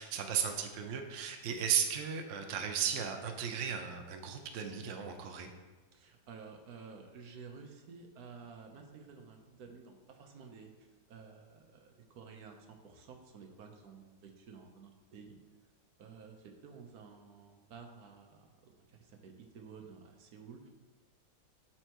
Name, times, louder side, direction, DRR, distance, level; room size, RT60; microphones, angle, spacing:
voice 1, 0.0-5.5, right 8 dB, 80° right, 5 dB, 0.6 m, -35 dB
voice 2, 5.9-15.4 16.0-20.7, right 5 dB, 60° right, 3 dB, 1.1 m, -52 dB
12.0 x 4.5 x 2.9 m, 1.3 s
omnidirectional pair, 2.2 m